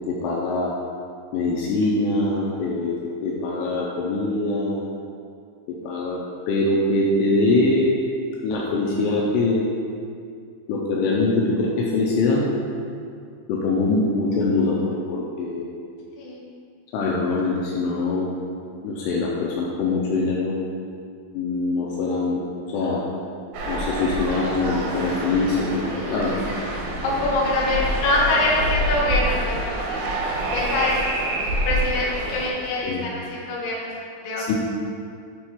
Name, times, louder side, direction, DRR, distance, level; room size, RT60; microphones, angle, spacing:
voice 1, 0.1-0.7 1.3-3.0 3.2-4.9 5.8-6.2 6.5-8.0 8.4-9.6 10.7-12.5 13.5-15.7 16.9-18.3 18.8-20.5 21.3-23.0 23.7-26.4 32.8-33.1 34.5-34.6, left 2 dB, 90° left, -4 dB, 2.4 m, -23 dB
sound 1, 23.5-32.5, right 1 dB, 75° right, 2.1 m, -27 dB
voice 2, 27.0-29.6 29.9-30.0 30.5-31.1 31.7-33.9 34.2-34.4, left 2 dB, 70° left, -5 dB, 2.2 m, -24 dB
8.0 x 3.5 x 4.5 m, 2.4 s
omnidirectional pair, 5.5 m